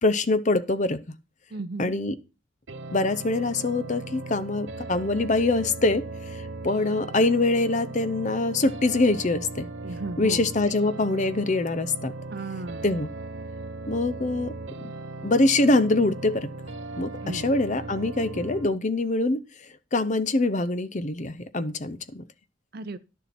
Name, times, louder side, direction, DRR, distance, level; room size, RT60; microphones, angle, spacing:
voice 1, 0.0-1.0 1.8-2.2 2.9-6.0 6.6-9.7 10.2-12.1 12.8-13.1 13.9-14.5 15.2-16.5 17.0-19.4 19.9-22.2, left 2 dB, 40° left, 0.7 m, -24 dB
voice 2, 1.5-1.9 9.8-10.5 12.3-12.9 17.2-17.5 22.7-23.0, right 3 dB, 50° right, 0.7 m, -35 dB
sound 1, 2.7-18.7, right 2 dB, 80° right, 0.9 m, -38 dB
11.0 x 7.1 x 4.3 m
head